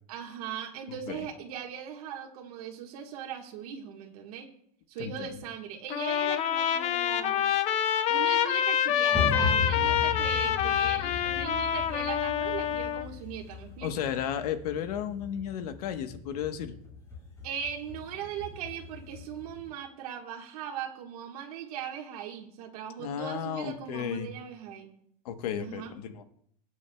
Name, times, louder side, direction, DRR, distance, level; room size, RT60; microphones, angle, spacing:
voice 1, 0.1-4.5 4.9-7.4 8.1-14.1 17.4-24.9 25.6-25.9, right 8 dB, 75° right, 2 dB, 1.5 m, -39 dB
voice 2, 5.0-5.4 13.8-16.8 23.0-24.3 25.2-26.2, left 9 dB, 85° left, 9 dB, 1.1 m, -34 dB
Trumpet, 5.9-13.1, left 9 dB, 35° left, 0.6 m, -27 dB
sound 1, 9.1-19.7, left 5 dB, 15° left, 2.4 m, -37 dB
19.5 x 8.6 x 2.3 m, 0.69 s
supercardioid pair, 155°, 20 cm